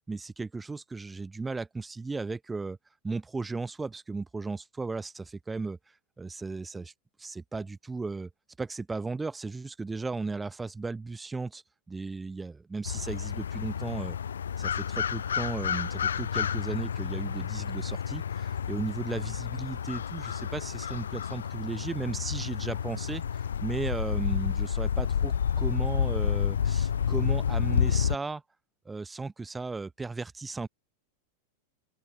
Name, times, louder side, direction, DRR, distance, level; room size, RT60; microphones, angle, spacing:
voice 1, 0.0-2.8 3.0-5.8 6.2-6.9 7.2-8.3 8.6-11.6 11.9-14.2 14.6-28.4 28.8-30.7, right 3 dB, 10° right, 1.6 m, -35 dB
sound 1, 12.9-28.2, left 8 dB, 65° left, 0.5 m, -30 dB
open air
figure-of-eight pair, 90°, 0 cm